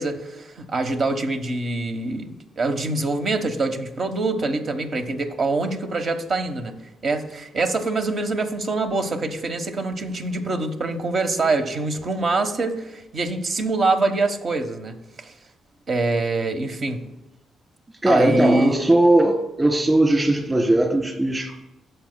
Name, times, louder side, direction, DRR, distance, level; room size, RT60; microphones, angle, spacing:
voice 1, 0.0-6.7 7.0-15.3 15.9-17.0 18.0-18.7, right 2 dB, 55° right, 7 dB, 1.2 m, -25 dB
voice 2, 18.0-21.5, right 1 dB, 25° right, 0 dB, 3.4 m, -18 dB
16.5 x 6.9 x 2.3 m, 0.92 s
hypercardioid pair, 45°, 0 cm